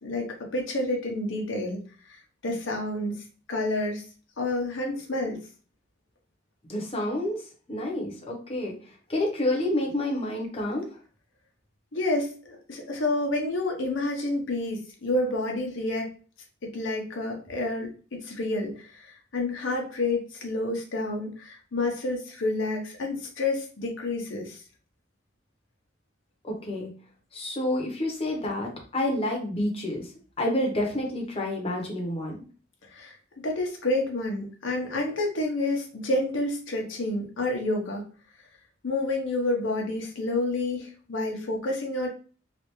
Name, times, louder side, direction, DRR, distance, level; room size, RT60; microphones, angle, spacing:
voice 1, 0.0-1.8 2.1-4.0 4.4-5.4 11.9-16.1 16.6-24.6 32.9-33.2 33.4-38.0 38.8-42.1, left 2 dB, 80° left, 1 dB, 0.7 m, -29 dB
voice 2, 6.7-7.4 7.7-11.0 26.4-26.9 27.3-30.1 30.4-32.4, left 1 dB, 30° left, -1 dB, 0.8 m, -29 dB
3.3 x 2.4 x 3.0 m, 0.39 s
head